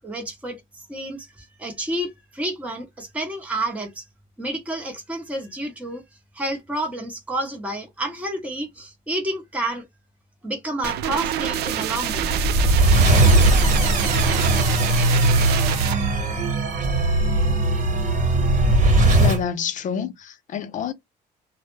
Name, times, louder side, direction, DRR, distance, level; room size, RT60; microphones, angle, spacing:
voice 1, 0.0-4.0 4.4-6.0 6.3-9.8 10.4-12.3, right 1 dB, 10° right, 0.8 m, -30 dB
sound 1, 10.8-16.0, right 8 dB, 75° right, 0.4 m, -27 dB
sound 2, 12.0-19.4, right 2 dB, 50° right, 1.2 m, -19 dB
voice 2, 19.2-20.9, left 7 dB, 50° left, 0.5 m, -28 dB
2.1 x 2.0 x 3.1 m
cardioid pair, 110°, 17 cm